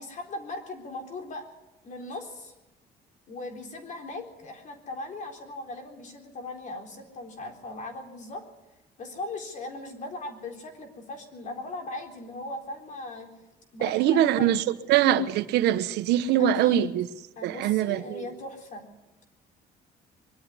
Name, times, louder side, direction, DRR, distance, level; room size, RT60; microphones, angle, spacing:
voice 1, 0.0-1.5 1.8-2.5 3.3-8.4 9.0-13.3 13.7-14.7 16.4-16.9 17.4-18.9, left 2 dB, 45° left, 3.9 m, -39 dB
voice 2, 13.8-14.6 14.9-17.1 17.4-18.3, right 10 dB, 80° right, 1.1 m, -23 dB
23.0 x 12.5 x 9.7 m
cardioid pair, 110°, 17 cm